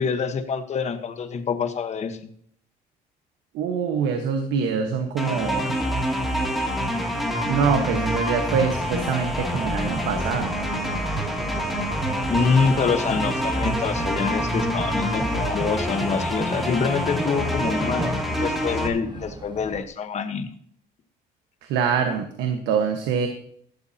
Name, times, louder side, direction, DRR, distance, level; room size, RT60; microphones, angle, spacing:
voice 1, 0.0-2.3 12.3-20.5, left 5 dB, 40° left, 8 dB, 1.3 m, -26 dB
voice 2, 3.5-5.8 7.4-10.6 21.6-23.3, right 6 dB, 90° right, 5 dB, 1.4 m, -24 dB
sound 1, 5.2-18.9, equal, ahead, 2.7 m, -26 dB
sound 2, 9.4-19.8, right 4 dB, 25° right, 1.2 m, -35 dB
15.5 x 12.5 x 2.9 m, 0.63 s
cardioid pair, 110°, 17 cm